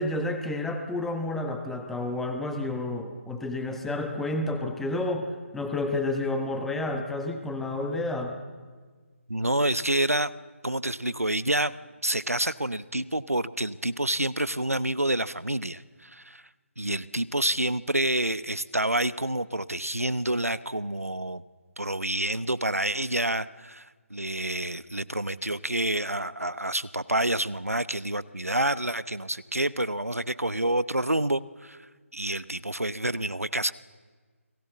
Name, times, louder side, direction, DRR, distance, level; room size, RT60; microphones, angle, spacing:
voice 1, 0.0-8.4, left 2 dB, 5° left, 5 dB, 1.1 m, -30 dB
voice 2, 9.3-10.3 10.6-11.7 12.0-16.4 16.8-21.4 21.8-31.8 32.1-33.7, right 1 dB, 90° right, 16 dB, 0.9 m, -28 dB
29.0 x 19.5 x 7.2 m, 1.5 s
figure-of-eight pair, 150°, 8 cm